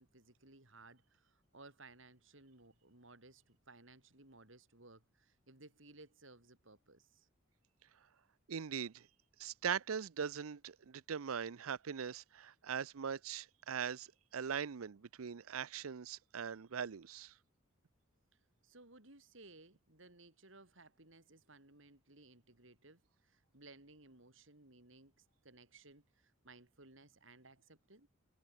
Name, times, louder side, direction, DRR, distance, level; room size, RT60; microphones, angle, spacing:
voice 1, 0.0-7.3 18.6-28.1, right 2 dB, 65° right, 4.3 m, -60 dB
voice 2, 8.5-9.1 9.4-14.1 14.3-17.3, right 7 dB, 90° right, 0.6 m, -41 dB
head